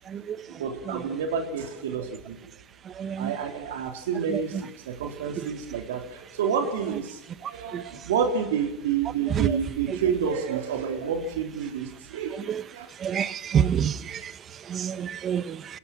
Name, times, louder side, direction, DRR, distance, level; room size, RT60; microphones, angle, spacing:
voice 1, 0.5-2.4 3.1-12.5 12.7-12.9, right 7 dB, 85° right, 4 dB, 3.9 m, -29 dB
voice 2, 3.0-3.3 4.3-4.6 9.3-9.4 9.9-10.0 12.5-12.6 13.0-14.0 14.7-15.6, right 8 dB, 30° right, 16 dB, 1.1 m, -26 dB
26.5 x 20.0 x 6.2 m, 0.83 s
supercardioid pair, 125°, 0 cm